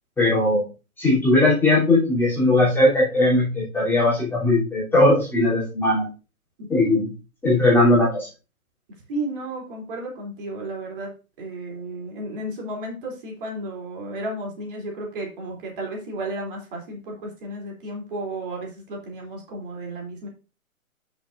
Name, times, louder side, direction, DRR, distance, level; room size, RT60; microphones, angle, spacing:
voice 1, 0.2-0.6 1.0-6.1 6.7-7.0 7.4-8.3, left 2 dB, 5° left, -8 dB, 3.2 m, -19 dB
voice 2, 9.1-11.1 11.4-20.3, right 1 dB, 35° right, -1 dB, 3.2 m, -33 dB
12.5 x 6.3 x 2.6 m, 0.32 s
figure-of-eight pair, 130°, 43 cm